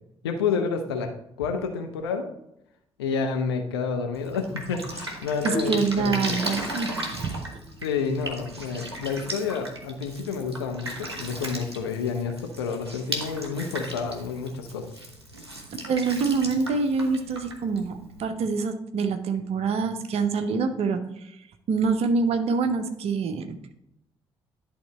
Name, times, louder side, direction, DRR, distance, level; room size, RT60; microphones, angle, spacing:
voice 1, 0.2-1.1 1.4-2.3 3.0-6.4 7.8-14.9, left 5 dB, 75° left, 5 dB, 0.7 m, -29 dB
Drip, 4.1-18.2, right 1 dB, 85° right, 0.7 m, -36 dB
voice 2, 5.4-6.9 7.2-7.3 15.9-21.0 21.7-23.7, right 4 dB, 50° right, 9 dB, 0.8 m, -25 dB
sound 1, 5.5-8.9, left 2 dB, 10° left, 1.4 m, -37 dB
10.5 x 3.6 x 4.3 m, 0.80 s
figure-of-eight pair, 45°, 13 cm